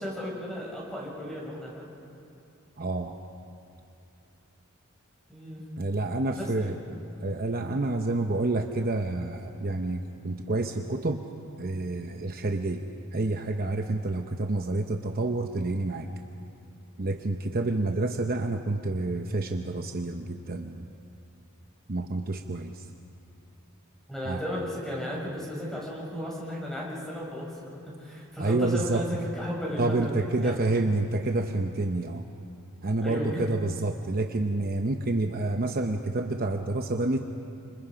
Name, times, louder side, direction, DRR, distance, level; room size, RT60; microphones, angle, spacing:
voice 1, 0.0-1.9 5.3-5.6 6.3-6.8 24.1-30.6 33.0-33.4, equal, ahead, -5 dB, 6.7 m, -34 dB
voice 2, 2.8-3.2 5.8-6.8 7.2-11.2 11.6-16.1 17.0-20.9 21.9-22.9 24.2-24.4 28.4-29.0 29.8-32.2 32.8-37.2, right 2 dB, 45° right, 4 dB, 0.9 m, -28 dB
29.5 x 26.5 x 5.1 m, 2.6 s
head